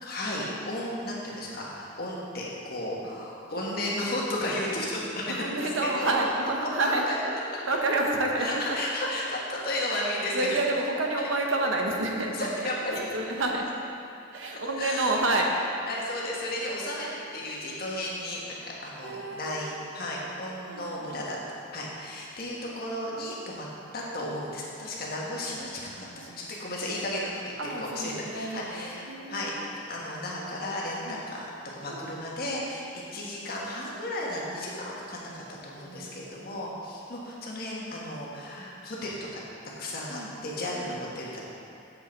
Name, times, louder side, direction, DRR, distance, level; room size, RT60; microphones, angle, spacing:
voice 1, 0.0-6.3 6.6-7.1 8.4-10.5 11.2-11.3 12.3-13.0 14.8-15.1 15.9-21.4 21.7-23.7 23.9-25.9 26.1-27.3 27.8-32.9 33.1-39.4 39.8-41.4, left 1 dB, 50° left, -4 dB, 1.6 m, -34 dB
voice 2, 5.3-7.0 7.6-8.8 9.0-9.1 10.3-12.6 13.0-13.7 14.3-15.5 19.0-20.1 20.6-21.3 25.9-26.5 27.6-29.7 31.0-31.2 31.9-32.1 35.8-36.6 40.1-40.3 40.7-40.9, right 2 dB, 85° right, 1 dB, 1.0 m, -30 dB
7.8 x 7.7 x 4.5 m, 2.6 s
head